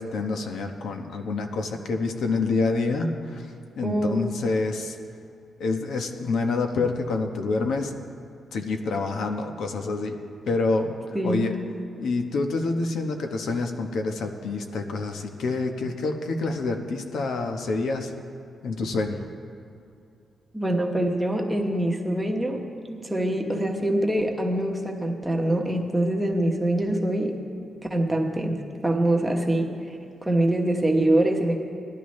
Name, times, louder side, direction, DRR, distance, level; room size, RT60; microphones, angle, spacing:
voice 1, 0.0-5.0 5.6-7.9 8.5-10.1 10.5-11.0 11.2-11.6 12.0-18.1 18.6-19.2, left 3 dB, 75° left, 4 dB, 1.0 m, -27 dB
voice 2, 3.8-4.2 11.1-11.5 20.5-27.4 27.9-30.0 30.2-31.6, right 1 dB, 10° right, 1 dB, 1.1 m, -24 dB
19.0 x 12.0 x 3.2 m, 2.5 s
wide cardioid pair, 150°, 0 cm